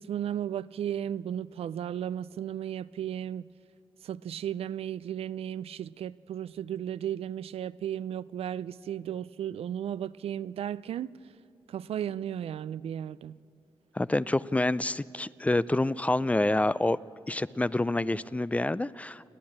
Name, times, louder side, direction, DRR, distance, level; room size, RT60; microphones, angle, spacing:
voice 1, 0.0-3.5 4.0-11.1 11.7-13.4, right 10 dB, 80° right, 0.4 m, -35 dB
voice 2, 14.0-17.0 17.3-19.3, left 2 dB, 15° left, 0.4 m, -27 dB
29.5 x 10.5 x 8.7 m
cardioid pair, 75°, 10 cm